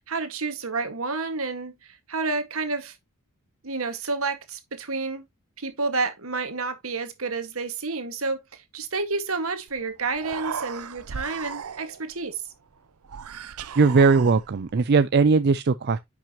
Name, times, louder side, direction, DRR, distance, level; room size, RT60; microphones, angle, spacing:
voice 1, 0.0-3.0 3.6-5.3 5.6-12.4, right 3 dB, 75° right, 1.8 m, -30 dB
Human voice, 9.7-9.8 10.1-12.1 13.0-14.7, right 6 dB, 90° right, 0.6 m, -36 dB
voice 2, 13.8-16.0, right 4 dB, 50° right, 0.4 m, -19 dB
9.9 x 6.0 x 2.9 m
head